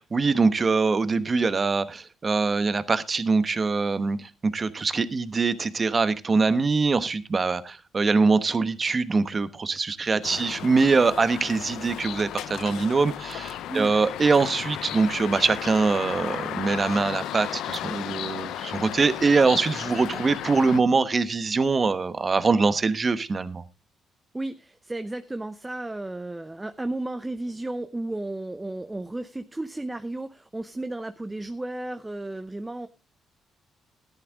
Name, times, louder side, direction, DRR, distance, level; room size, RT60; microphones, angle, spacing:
voice 1, 0.0-23.6, right 4 dB, 35° right, 1.1 m, -23 dB
voice 2, 10.0-10.5 13.7-13.9 24.3-32.9, right 2 dB, 15° right, 0.7 m, -34 dB
sound 1, 10.2-20.8, left 12 dB, 85° left, 0.6 m, -34 dB
13.5 x 11.0 x 3.6 m
cardioid pair, 90°, 0 cm